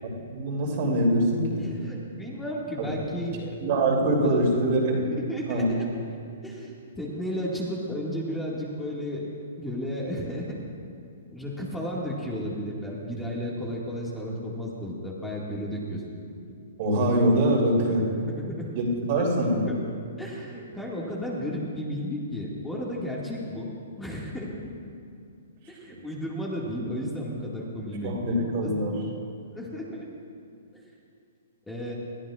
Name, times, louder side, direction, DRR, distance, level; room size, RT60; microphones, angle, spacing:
voice 1, 0.3-1.7 2.8-2.9 3.6-5.0 5.5-5.7 16.8-18.1 18.7-19.6 28.0-29.0, right 1 dB, 50° right, -2 dB, 3.0 m, -23 dB
voice 2, 1.6-3.5 4.2-4.4 5.1-5.9 6.4-10.6 11.3-16.0 17.9-18.8 19.6-19.8 20.2-23.7 24.0-24.8 25.7-28.7 29.5-30.1 30.7-30.8 31.7-31.9, equal, 10° left, -5 dB, 2.0 m, -33 dB
21.0 x 13.5 x 2.5 m, 2.4 s
hypercardioid pair, 130°, 0 cm